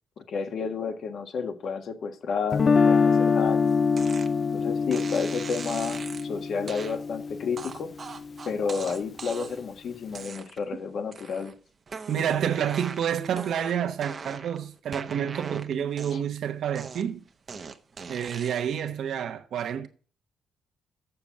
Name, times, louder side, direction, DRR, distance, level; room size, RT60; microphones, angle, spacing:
voice 1, 0.2-3.7 4.5-7.9 8.4-11.5 16.1-16.2, left 5 dB, 60° left, 1.4 m, -31 dB
Guitar, 2.5-8.5, left 5 dB, 40° left, 0.4 m, -25 dB
sound 1, 4.0-4.3 4.9-6.3 6.7-7.0 7.6-9.7 10.1-10.7 11.1-11.5 11.9-14.6 14.9-16.4 16.7-18.8, right 5 dB, 40° right, 0.8 m, -40 dB
voice 2, 12.1-17.2 18.1-19.9, right 9 dB, 70° right, 1.0 m, -29 dB
7.1 x 6.9 x 5.9 m
cardioid pair, 90°, 0 cm